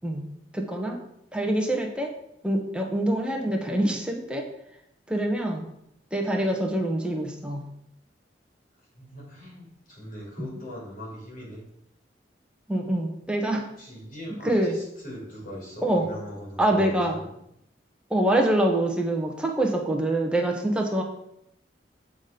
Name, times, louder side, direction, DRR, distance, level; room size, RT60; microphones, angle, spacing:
voice 1, 0.5-1.0 1.3-2.1 2.4-4.4 5.1-5.6 6.1-7.6 12.7-13.7 14.4-14.8 15.8-16.0 16.6-17.2 18.1-21.0, right 1 dB, 5° right, 1 dB, 1.2 m, -25 dB
voice 2, 9.0-11.6 13.8-17.3, equal, 50° left, -3 dB, 2.6 m, -40 dB
8.4 x 4.2 x 5.1 m, 0.77 s
head